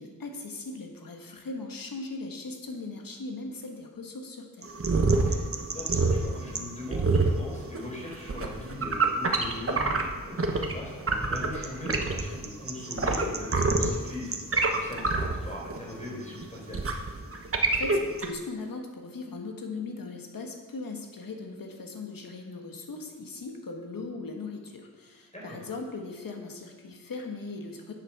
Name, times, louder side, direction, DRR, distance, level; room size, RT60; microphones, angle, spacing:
voice 1, 0.0-4.7 17.7-27.9, left 3 dB, 80° left, 3 dB, 1.6 m, -39 dB
sound 1, 4.6-10.7 11.0-18.3, right 3 dB, 40° right, 1.2 m, -27 dB
voice 2, 5.7-14.4 14.7-16.8 25.3-25.6, left 2 dB, 20° left, -3 dB, 4.2 m, -40 dB
10.5 x 8.2 x 6.1 m, 1.4 s
wide cardioid pair, 115°, 34 cm